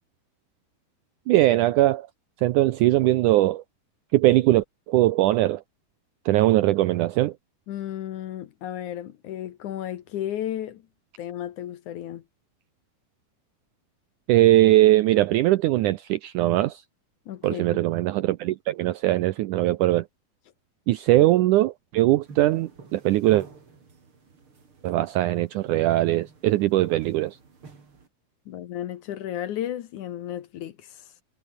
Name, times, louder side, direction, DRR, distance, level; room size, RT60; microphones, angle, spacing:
voice 1, 1.3-2.1 2.4-3.6 4.1-5.6 6.3-7.3 14.3-16.8 17.4-20.1 20.9-23.5 24.8-27.4, right 16 dB, 80° right, 1.8 m, -21 dB
voice 2, 7.7-10.8 11.2-12.2 17.3-17.9 28.5-31.1, left 11 dB, 65° left, 2.3 m, -33 dB
sound 1, 22.2-28.1, right 4 dB, 35° right, 4.2 m, -48 dB
omnidirectional pair, 4.3 m